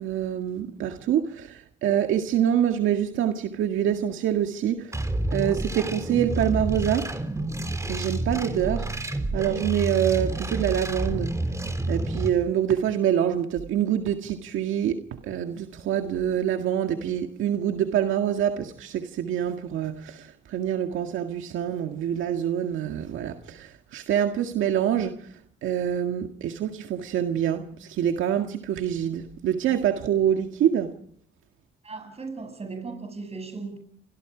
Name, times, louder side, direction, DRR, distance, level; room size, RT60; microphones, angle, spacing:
voice 1, 0.0-5.0 5.3-7.1 7.9-11.4 11.9-31.0, right 10 dB, 80° right, 1.9 m, -26 dB
sound 1, 4.9-12.3, right 2 dB, 15° right, 3.6 m, -29 dB
voice 2, 31.8-33.8, right 4 dB, 30° right, 7.8 m, -37 dB
30.0 x 26.5 x 5.1 m
cardioid pair, 90°, 20 cm